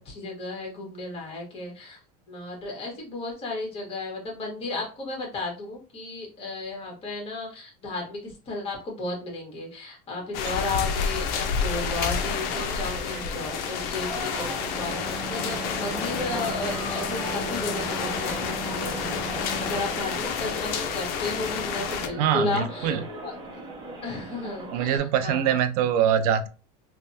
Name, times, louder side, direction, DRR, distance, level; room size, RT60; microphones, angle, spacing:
voice 1, 0.0-2.0 2.3-23.3 24.0-25.6, left 3 dB, 30° left, 0 dB, 1.4 m, -34 dB
sound 1, 10.3-22.1, left 7 dB, 55° left, 0.5 m, -30 dB
sound 2, 12.2-25.0, right 2 dB, 25° right, 0.7 m, -38 dB
sound 3, 14.7-19.9, right 1 dB, ahead, 0.4 m, -36 dB
voice 2, 22.2-23.0 24.7-26.5, right 9 dB, 75° right, 10 dB, 0.5 m, -23 dB
3.3 x 2.1 x 2.7 m, 0.34 s
supercardioid pair, 135°, 20 cm